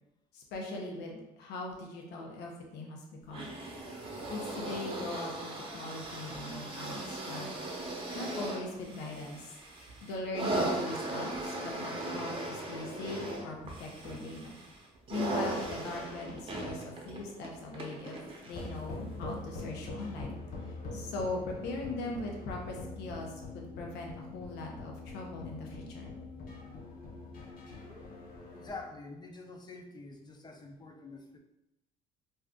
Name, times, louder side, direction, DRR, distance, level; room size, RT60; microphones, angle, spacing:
voice 1, 0.3-3.5 4.3-7.5 8.1-9.5 10.0-14.6 15.1-18.2 18.5-20.4 20.9-26.1, left 2 dB, 90° left, 0 dB, 0.6 m, -40 dB
sound 1, 3.3-18.8 19.6-19.7, right 2 dB, 30° right, 0.7 m, -38 dB
sound 2, 18.5-28.8, left 3 dB, 55° left, 0.8 m, -43 dB
voice 2, 28.5-31.4, left 3 dB, 25° left, 4 dB, 0.4 m, -46 dB
2.6 x 2.4 x 3.5 m, 0.90 s
cardioid pair, 110°, 17 cm